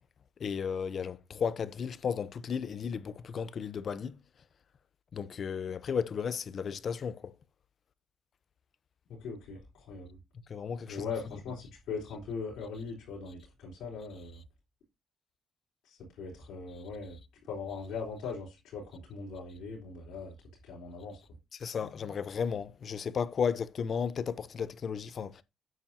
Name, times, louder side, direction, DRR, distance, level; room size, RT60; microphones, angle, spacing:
voice 1, 0.4-4.1 5.1-7.3 10.5-11.1 21.6-25.4, left 6 dB, 50° left, 0.7 m, -34 dB
voice 2, 9.1-10.2 10.9-14.4 15.8-17.2 17.4-20.3 20.6-21.2, left 5 dB, 80° left, 4.1 m, -40 dB
9.1 x 8.8 x 2.8 m
cardioid pair, 90°, 0 cm